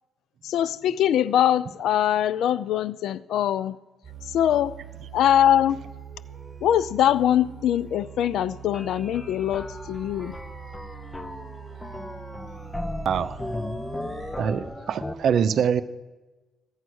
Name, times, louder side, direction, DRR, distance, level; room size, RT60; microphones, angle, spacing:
voice 1, 0.4-3.8 4.3-4.7 5.1-5.8 6.6-10.3, left 10 dB, 80° left, 18 dB, 0.5 m, -22 dB
sound 1, 4.0-14.4, right 8 dB, 30° right, 4.1 m, -43 dB
sound 2, 8.7-15.1, left 1 dB, 15° left, 0.9 m, -36 dB
voice 2, 13.0-13.4 14.4-15.8, right 7 dB, 65° right, 13 dB, 0.7 m, -24 dB
15.0 x 8.9 x 6.3 m, 1.1 s
cardioid pair, 90°, 0 cm